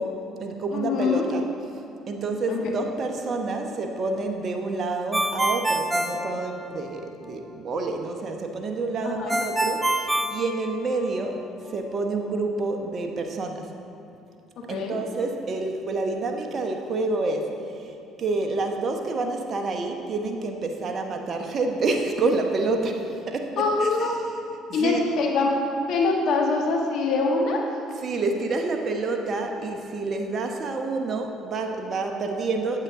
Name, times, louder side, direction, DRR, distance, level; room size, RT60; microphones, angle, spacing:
voice 1, 0.0-1.4 2.1-11.4 11.7-13.7 14.7-24.1 24.7-25.0 28.0-32.8, right 3 dB, 50° right, 4 dB, 0.9 m, -28 dB
voice 2, 0.7-1.3 2.5-2.6 9.0-9.4 14.6-15.0 23.6-24.2 24.7-25.6 25.9-27.6, left 3 dB, 65° left, 0 dB, 1.4 m, -24 dB
Ringtone, 5.1-7.0 9.3-11.2, right 1 dB, 10° right, 0.7 m, -26 dB
8.8 x 8.0 x 3.7 m, 2.8 s
hypercardioid pair, 60°, 0 cm